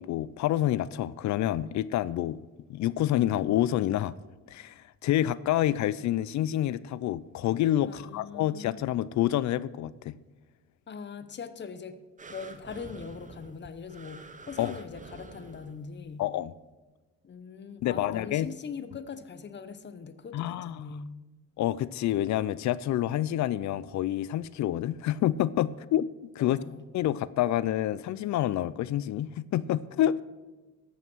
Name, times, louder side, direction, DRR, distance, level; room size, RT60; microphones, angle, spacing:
voice 1, 0.0-2.4 2.7-4.1 4.5-10.2 14.6-14.7 16.2-16.5 17.8-18.5 20.3-20.7 21.6-26.1 26.4-26.6 26.9-30.2, left 12 dB, 65° left, 0.5 m, -28 dB
voice 2, 7.8-8.8 10.9-12.0 12.3-16.3 17.2-21.1 26.4-26.9, left 5 dB, 35° left, 0.8 m, -41 dB
sound 1, 12.2-16.1 16.7-16.8, right 3 dB, 25° right, 1.0 m, -48 dB
14.5 x 5.7 x 6.2 m
cardioid pair, 90°, 30 cm